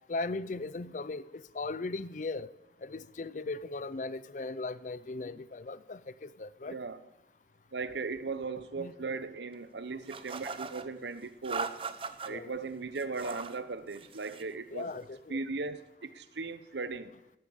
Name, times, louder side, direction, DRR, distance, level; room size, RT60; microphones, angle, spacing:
voice 1, 0.1-1.2 1.5-2.5 2.8-6.8 8.8-8.9 12.3-12.5 14.7-15.4, left 3 dB, 45° left, 0.5 m, -38 dB
voice 2, 6.7-7.0 7.7-11.8 12.2-15.0 15.3-17.1, right 4 dB, 80° right, 0.8 m, -38 dB
sound 1, 10.1-10.9 11.4-12.3 13.0-13.6 13.9-14.5, right 5 dB, 30° right, 0.8 m, -39 dB
18.5 x 8.9 x 7.0 m
head